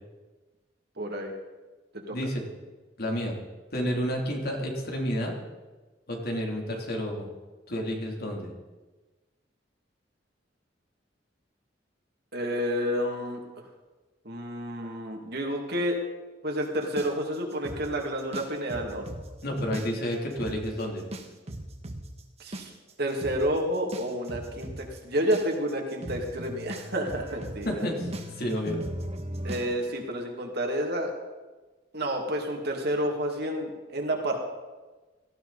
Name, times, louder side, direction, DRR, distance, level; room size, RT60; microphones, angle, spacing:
voice 1, 1.0-1.3 1.9-2.2 12.3-13.7 14.2-16.0 16.4-19.1 22.4-22.7 23.0-27.9 29.4-31.1 31.9-34.4, equal, 60° right, 2 dB, 2.5 m, -30 dB
voice 2, 2.1-2.5 3.0-3.4 3.7-5.3 6.1-7.3 7.7-8.5 19.4-21.1 27.6-28.8, equal, 55° left, 0 dB, 3.2 m, -30 dB
sound 1, 17.0-19.2 19.6-20.1 20.4-20.6 21.1-29.7, right 1 dB, 35° right, 1.6 m, -37 dB
18.0 x 15.0 x 4.2 m, 1.2 s
head